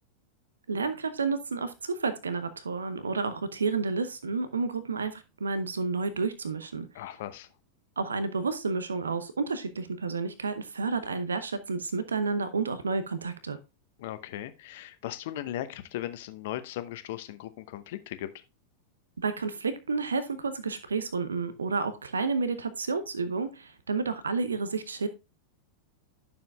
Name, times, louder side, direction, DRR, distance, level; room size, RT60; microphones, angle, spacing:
voice 1, 0.7-6.9 8.0-13.6 19.2-25.1, right 4 dB, 75° right, 12 dB, 0.7 m, -30 dB
voice 2, 6.9-7.5 14.0-18.3, left 13 dB, 55° left, 11 dB, 0.8 m, -37 dB
11.5 x 7.0 x 2.3 m, 0.27 s
figure-of-eight pair, 90°, 0 cm